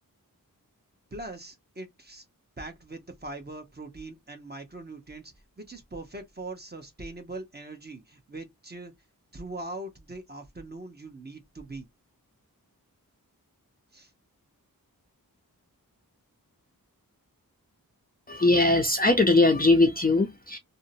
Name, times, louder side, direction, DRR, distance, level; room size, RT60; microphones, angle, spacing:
voice 1, 1.1-2.2 2.6-8.9 9.3-11.9 13.9-14.1, right 2 dB, 25° right, 0.9 m, -41 dB
voice 2, 18.3-20.6, left 2 dB, 25° left, 0.5 m, -21 dB
2.7 x 2.1 x 2.6 m
wide cardioid pair, 50°, 36 cm